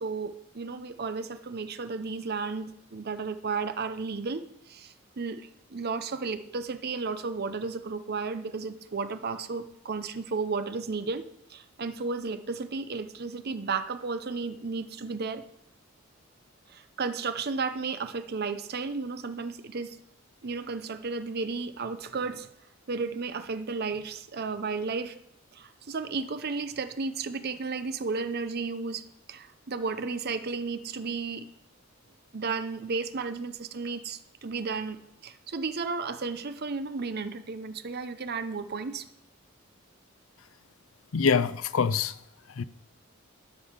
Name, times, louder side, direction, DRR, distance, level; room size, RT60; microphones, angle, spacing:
voice 1, 0.0-15.5 16.7-20.0 20.4-22.5 22.9-25.2 25.5-31.5 32.3-39.0, right 4 dB, 50° right, 0.7 m, -33 dB
voice 2, 41.1-42.2 42.5-42.6, left 5 dB, 75° left, 0.5 m, -25 dB
12.0 x 5.5 x 6.5 m
head